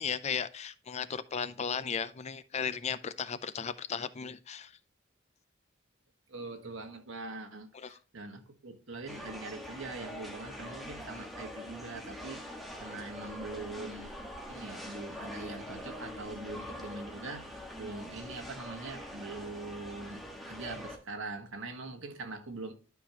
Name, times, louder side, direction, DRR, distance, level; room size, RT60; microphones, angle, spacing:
voice 1, 0.0-4.7 7.7-8.0, left 6 dB, 35° left, 0.4 m, -35 dB
voice 2, 6.3-14.1 14.5-20.2 20.5-22.7, right 3 dB, 75° right, 1.5 m, -43 dB
sound 1, 9.1-21.0, equal, ahead, 1.3 m, -44 dB
11.5 x 4.9 x 2.9 m
head